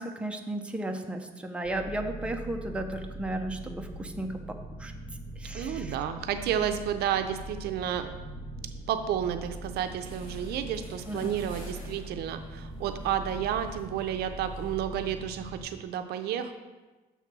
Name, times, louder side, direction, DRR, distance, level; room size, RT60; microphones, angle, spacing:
voice 1, 0.0-4.9 5.4-5.9 11.1-11.4, right 1 dB, 5° right, 4 dB, 0.6 m, -34 dB
sound 1, 1.6-15.6, right 1 dB, 80° left, 1.8 m, -42 dB
voice 2, 5.5-8.1 8.9-16.5, right 9 dB, 80° right, 8 dB, 0.5 m, -31 dB
sound 2, 9.9-15.3, left 1 dB, 30° left, 2.3 m, -53 dB
7.1 x 3.6 x 6.0 m, 1.2 s
cardioid pair, 120°, 16 cm